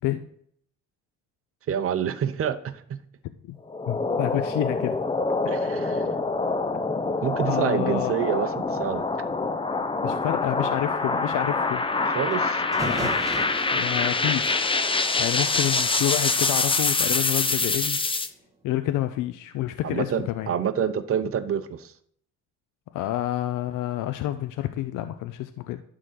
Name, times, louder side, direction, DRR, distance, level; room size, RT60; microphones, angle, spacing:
voice 1, 1.7-2.8 5.5-6.1 7.2-9.1 12.0-12.6 19.8-21.9, right 8 dB, 45° right, 11 dB, 0.8 m, -27 dB
sound 1, 3.7-18.3, left 3 dB, 15° left, 0.7 m, -25 dB
voice 2, 3.9-5.0 7.5-8.1 10.0-11.9 12.7-13.1 13.7-14.7 15.2-18.0 18.6-20.5 22.9-25.8, left 13 dB, 90° left, 9 dB, 0.5 m, -28 dB
sound 2, 12.3-12.4 12.7-16.2, right 2 dB, 10° right, 1.7 m, -37 dB
11.0 x 3.8 x 6.7 m, 0.66 s
cardioid pair, 90°, 30 cm